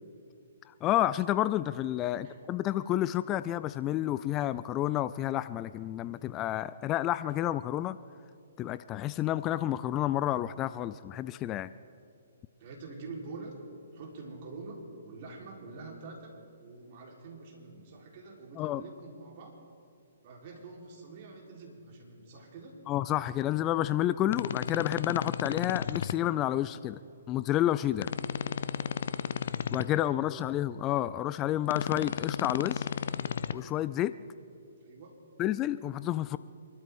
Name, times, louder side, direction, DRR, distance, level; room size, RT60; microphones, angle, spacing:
voice 1, 0.8-8.0 8.6-11.7 18.6-18.8 22.9-27.0 27.3-28.1 29.7-32.9 33.5-34.2 35.4-36.4, left 13 dB, 25° left, 15 dB, 0.3 m, -30 dB
voice 2, 2.1-2.4 12.6-13.5 13.9-16.3 16.6-19.6 20.2-22.8 30.1-30.6 34.8-35.2, right 3 dB, 45° right, -1 dB, 3.8 m, -46 dB
sound 1, 24.3-26.1 28.0-29.8 31.7-33.5, left 8 dB, 60° left, 0.6 m, -33 dB
26.5 x 12.5 x 3.6 m, 2.6 s
figure-of-eight pair, 130°, 0 cm